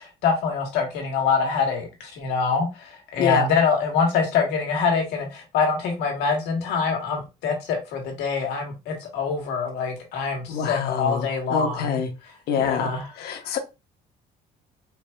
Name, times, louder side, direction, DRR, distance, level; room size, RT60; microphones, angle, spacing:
voice 1, 0.0-12.0 12.6-13.1, left 5 dB, 85° left, 1.5 m, -25 dB
voice 2, 3.2-3.5 10.5-12.1 12.5-13.6, left 7 dB, 70° left, 0.9 m, -26 dB
4.7 x 2.7 x 2.2 m
cardioid pair, 110°, 17 cm